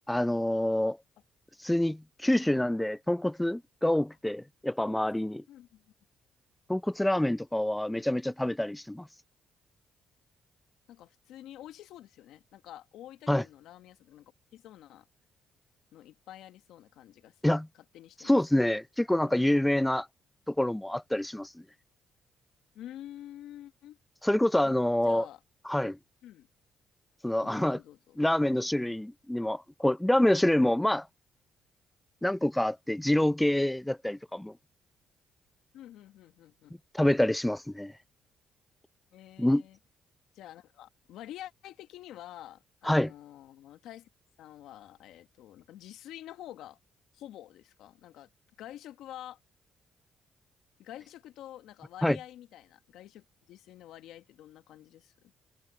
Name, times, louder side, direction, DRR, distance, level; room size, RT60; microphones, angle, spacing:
voice 1, 0.1-1.0 1.6-5.4 6.7-9.1 13.3-13.4 17.4-17.7 18.2-20.1 20.5-21.5 24.2-25.3 25.7-26.0 27.2-27.8 28.2-31.1 32.2-34.5 36.9-37.9 39.4-39.6 42.9-43.1 52.0-52.2, left 1 dB, 10° left, 0.6 m, -26 dB
voice 2, 5.5-5.9 8.0-8.1 10.9-15.1 15.9-17.4 17.9-18.3 19.1-19.4 22.7-24.0 24.6-24.8 25.0-25.4 26.2-26.5 27.4-28.2 35.7-36.8 39.1-39.8 40.3-44.1 44.4-46.8 47.1-48.3 48.6-49.4 50.8-55.1, left 12 dB, 80° left, 1.9 m, -48 dB
supercardioid pair, 60°, 0 cm